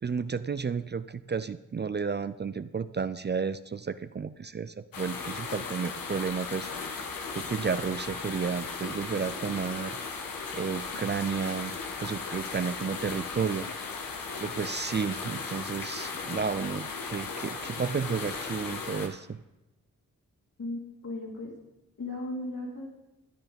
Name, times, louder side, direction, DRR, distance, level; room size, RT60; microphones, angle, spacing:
voice 1, 0.0-7.1 7.3-10.0 10.5-13.7 14.0-14.1 14.4-19.4, right 5 dB, 30° right, 13 dB, 0.5 m, -32 dB
sound 1, 4.9-19.1, left 4 dB, 90° left, 1.4 m, -37 dB
voice 2, 20.6-21.5 22.0-22.9, left 2 dB, 60° left, -2 dB, 3.7 m, -36 dB
12.0 x 10.0 x 5.3 m, 0.98 s
supercardioid pair, 40°, 33 cm